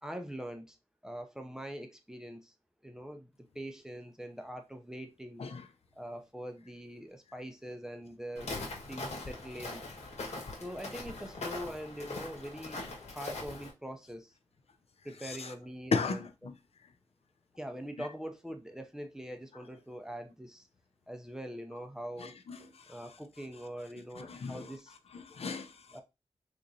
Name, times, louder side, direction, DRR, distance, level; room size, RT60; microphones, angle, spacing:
voice 1, 0.0-0.8 1.0-2.5 2.8-5.4 6.0-8.5 8.9-9.8 10.5-14.3 15.0-16.3 17.6-20.7 21.1-22.3 22.9-24.9 25.9-26.0, equal, 5° right, 0.5 m, -43 dB
Walk footsteps, 8.3-13.7, left 2 dB, 90° left, 1.3 m, -41 dB
voice 2, 15.2-15.5 15.9-16.5 18.0-18.1 22.2-23.0 24.1-24.7 25.1-26.0, left 4 dB, 65° left, 0.5 m, -36 dB
3.8 x 2.9 x 2.5 m
wide cardioid pair, 130°, 11 cm